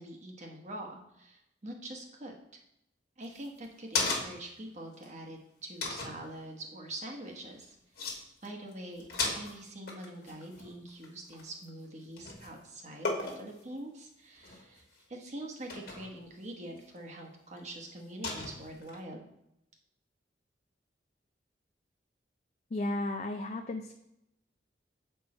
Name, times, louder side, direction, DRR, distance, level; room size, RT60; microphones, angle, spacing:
voice 1, 0.0-2.3 3.2-14.8 15.1-19.3, right 1 dB, 40° right, 2 dB, 1.0 m, -44 dB
sound 1, 3.2-4.6 5.0-5.1 5.8-6.2 7.6-7.7 8.0-8.2 8.4-8.7 9.0-11.8 12.2-12.6 13.0-13.6 14.4-14.8 15.7-16.1 16.8-16.9 18.2-19.0, left 3 dB, 55° left, 1.3 m, -35 dB
voice 2, 22.7-23.9, left 1 dB, 40° left, 5 dB, 0.4 m, -34 dB
7.3 x 4.5 x 4.2 m, 0.83 s
head